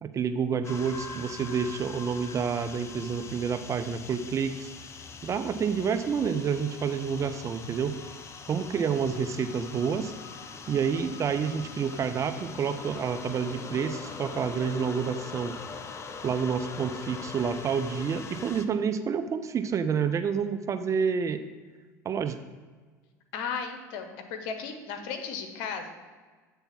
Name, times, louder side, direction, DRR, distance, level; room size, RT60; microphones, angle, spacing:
voice 1, 0.0-4.7 5.2-7.9 8.5-10.1 10.7-15.5 16.2-21.4 22.0-22.4, right 6 dB, 35° right, 9 dB, 0.5 m, -29 dB
sound 1, 0.6-18.7, left 5 dB, 30° left, 0.6 m, -42 dB
voice 2, 23.3-25.9, left 6 dB, 60° left, 5 dB, 1.0 m, -35 dB
8.1 x 3.5 x 5.8 m, 1.4 s
hypercardioid pair, 75°, 9 cm